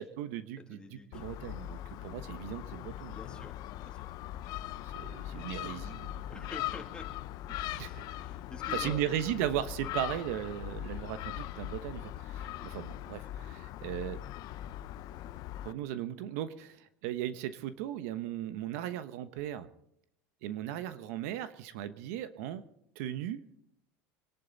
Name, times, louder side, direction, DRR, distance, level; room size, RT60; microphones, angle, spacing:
voice 1, 0.0-0.8 1.1-3.2 4.8-6.3 7.7-8.2 8.7-14.2 15.6-19.7 20.4-22.6 23.0-23.4, right 11 dB, 75° right, 12 dB, 1.1 m, -37 dB
voice 2, 0.6-1.2 3.1-4.1 6.3-7.2 7.6-9.4 12.5-12.7, left 3 dB, 10° left, 2 dB, 2.7 m, -49 dB
Gull seagull, 1.1-15.7, left 13 dB, 50° left, 0.8 m, -40 dB
25.0 x 11.5 x 4.1 m, 0.77 s
supercardioid pair, 130°, 8 cm